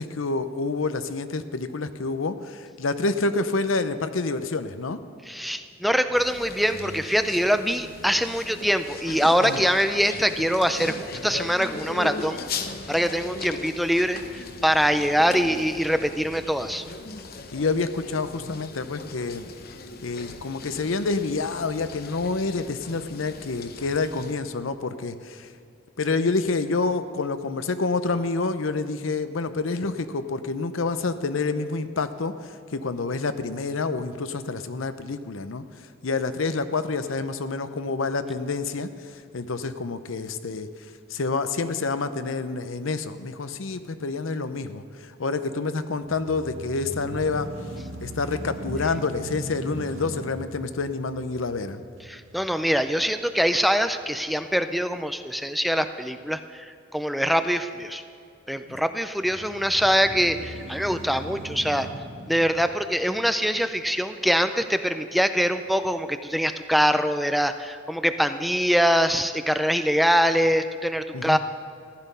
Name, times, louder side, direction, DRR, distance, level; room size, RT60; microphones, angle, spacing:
voice 1, 0.0-5.0 9.4-9.6 17.5-19.5 20.0-25.5 26.0-32.3 32.7-35.6 36.0-38.9 39.3-40.7 41.1-47.5 48.0-51.8 58.7-58.8 71.1-71.4, left 3 dB, 80° left, 11 dB, 0.7 m, -28 dB
voice 2, 5.3-12.4 12.9-16.8 52.1-58.0 58.5-61.9 62.3-71.4, equal, ahead, 9 dB, 0.4 m, -23 dB
sound 1, 6.1-24.4, left 3 dB, 50° left, 0.8 m, -38 dB
sound 2, 46.0-54.1 54.6-54.7 59.2-63.7, right 1 dB, 75° right, 1.7 m, -40 dB
14.5 x 10.5 x 5.5 m, 2.5 s
head